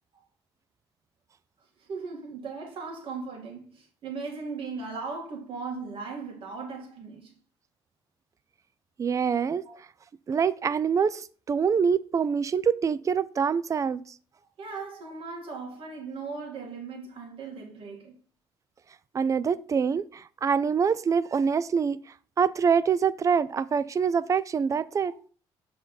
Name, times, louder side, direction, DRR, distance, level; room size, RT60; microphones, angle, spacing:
voice 1, 1.8-7.3 9.6-9.7 14.6-18.2, right 4 dB, 60° right, 2.2 m, -38 dB
voice 2, 9.0-9.6 10.3-14.0 19.1-22.0 22.4-25.1, right 6 dB, 30° right, 0.4 m, -25 dB
6.5 x 3.8 x 4.0 m
cardioid pair, 95°, 10 cm